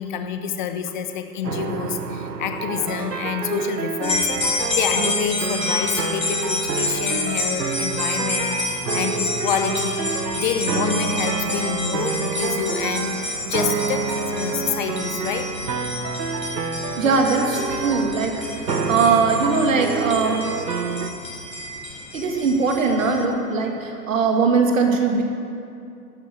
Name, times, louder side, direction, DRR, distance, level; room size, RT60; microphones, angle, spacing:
voice 1, 0.0-15.5, left 8 dB, 30° left, 8 dB, 1.0 m, -28 dB
sound 1, 1.4-21.1, right 5 dB, 75° right, 1.1 m, -28 dB
sound 2, 4.0-23.3, left 2 dB, 85° left, 3.5 m, -29 dB
voice 2, 17.0-20.5 22.1-25.2, right 4 dB, 50° right, 2 dB, 2.4 m, -21 dB
13.0 x 10.5 x 7.9 m, 2.6 s
figure-of-eight pair, 120°, 50 cm